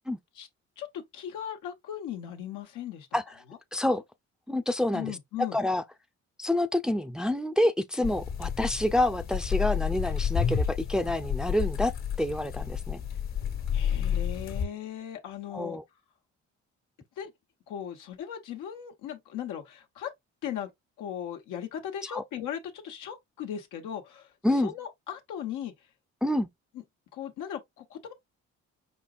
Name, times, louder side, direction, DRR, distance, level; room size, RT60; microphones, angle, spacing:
voice 1, 0.8-3.1 4.9-5.6 13.7-15.8 17.2-17.3 17.7-20.1 20.4-20.7 21.0-24.3 24.6-25.7 27.1-28.1, left 10 dB, 90° left, 1.2 m, -37 dB
voice 2, 3.7-4.0 4.5-5.8 6.4-13.0 15.5-15.8 22.1-22.2 24.4-24.7 26.2-26.5, left 1 dB, ahead, 0.4 m, -28 dB
sound 1, 8.0-14.7, left 8 dB, 60° left, 1.4 m, -30 dB
5.0 x 4.4 x 2.4 m
cardioid pair, 90°, 30 cm